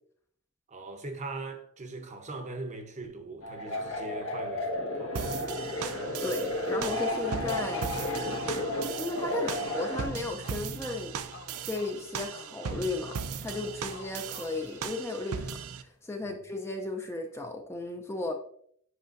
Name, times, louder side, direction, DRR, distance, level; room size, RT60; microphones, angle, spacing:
voice 1, 0.7-5.4 16.2-16.4, right 2 dB, 35° right, 0.7 m, -40 dB
sound 1, 3.4-10.0, left 1 dB, 75° left, 1.3 m, -33 dB
sound 2, 5.1-15.8, right 6 dB, 90° right, 0.5 m, -38 dB
voice 2, 6.2-7.9 9.0-11.1 11.6-18.3, left 2 dB, 10° left, 0.4 m, -35 dB
sound 3, 7.9-15.5, left 4 dB, 50° left, 0.8 m, -51 dB
8.0 x 5.5 x 2.5 m
head